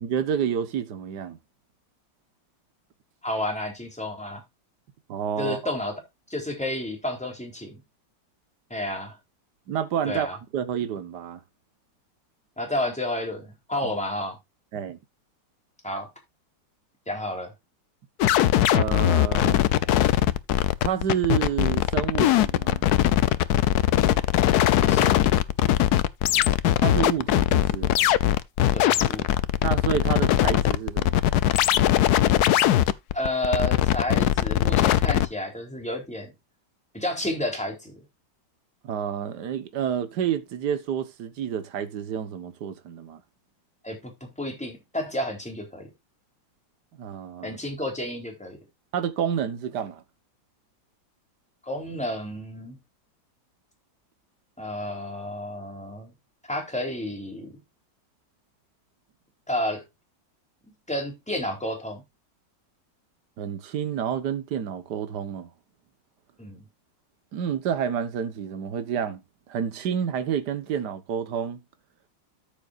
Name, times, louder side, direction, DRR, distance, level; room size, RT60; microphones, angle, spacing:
voice 1, 0.0-1.4 5.1-5.6 9.7-10.3 10.5-11.4 14.7-15.0 18.7-19.6 20.8-22.8 26.8-27.9 29.6-31.2 38.8-43.2 47.0-47.6 48.9-50.0 63.4-65.5 67.3-69.2 69.5-71.6, right 8 dB, 65° right, 1.8 m, -29 dB
voice 2, 3.2-4.4 5.4-6.0 6.3-7.8 8.7-9.2 10.1-10.4 12.6-14.4 15.8-16.1 17.1-17.5 24.8-25.2 28.7-29.3 33.1-36.3 36.9-38.0 43.8-45.9 47.4-48.6 51.6-52.8 54.6-56.1 56.5-57.6 59.5-59.8 60.9-62.0 66.4-66.7, left 1 dB, 5° left, 3.7 m, -31 dB
sound 1, 18.2-35.3, left 12 dB, 65° left, 1.1 m, -21 dB
13.5 x 7.0 x 2.5 m
omnidirectional pair, 2.0 m